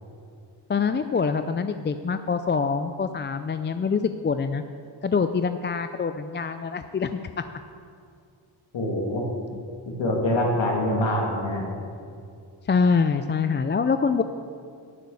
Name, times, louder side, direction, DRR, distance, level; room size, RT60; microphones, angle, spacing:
voice 1, 0.7-4.6 5.0-7.2 12.7-14.2, left 5 dB, 25° left, 9 dB, 0.4 m, -25 dB
voice 2, 8.7-9.2 9.8-11.6, left 1 dB, 65° left, -1 dB, 2.8 m, -25 dB
11.5 x 6.7 x 8.2 m, 2.4 s
cardioid pair, 60°, 48 cm